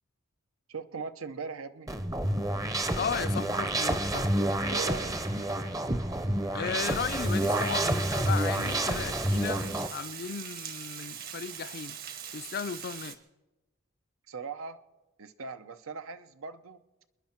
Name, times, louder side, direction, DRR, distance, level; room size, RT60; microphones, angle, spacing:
voice 1, 0.7-1.9 4.7-5.2 14.3-14.8 15.2-16.8, right 5 dB, 80° right, 0.8 m, -39 dB
sound 1, 1.9-9.9, right 1 dB, 15° right, 0.7 m, -29 dB
voice 2, 3.0-4.3 6.5-9.6 9.9-12.0 12.3-13.2, left 6 dB, 45° left, 0.4 m, -35 dB
sound 2, 4.1-9.5, right 3 dB, 60° right, 2.1 m, -53 dB
Water, 6.8-13.2, right 9 dB, 45° right, 1.1 m, -42 dB
28.5 x 10.5 x 4.4 m
head